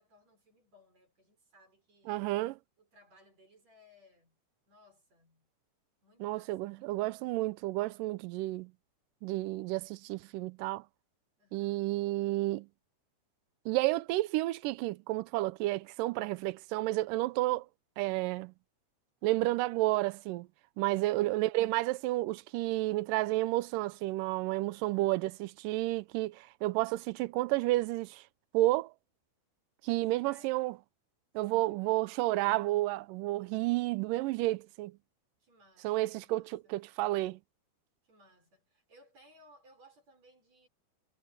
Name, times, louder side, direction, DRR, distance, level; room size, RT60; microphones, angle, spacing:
voice 1, 0.0-2.3 2.8-4.4 4.7-5.5 6.0-7.4 11.4-11.9 21.0-21.3 24.9-25.5 30.0-30.7 31.4-32.1 35.4-36.8 38.0-40.7, equal, 40° right, 7.4 m, -63 dB
voice 2, 2.1-2.6 6.2-8.7 9.2-10.8 11.5-12.7 13.7-17.7 18.0-18.5 19.2-20.5 20.8-28.2 28.5-28.9 29.8-30.7 31.4-34.9 35.8-36.4 36.7-37.4, right 18 dB, 85° right, 1.9 m, -31 dB
omnidirectional pair, 4.5 m